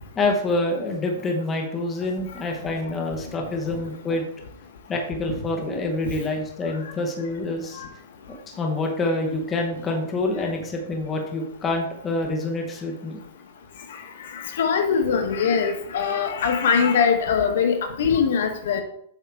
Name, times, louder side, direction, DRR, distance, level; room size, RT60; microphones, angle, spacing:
voice 1, 0.1-4.2 4.9-7.8 8.5-13.2, left 2 dB, 15° left, 1 dB, 1.0 m, -26 dB
voice 2, 14.3-18.8, left 6 dB, 70° left, 6 dB, 1.1 m, -22 dB
7.9 x 5.5 x 3.5 m, 0.68 s
supercardioid pair, 165°, 0 cm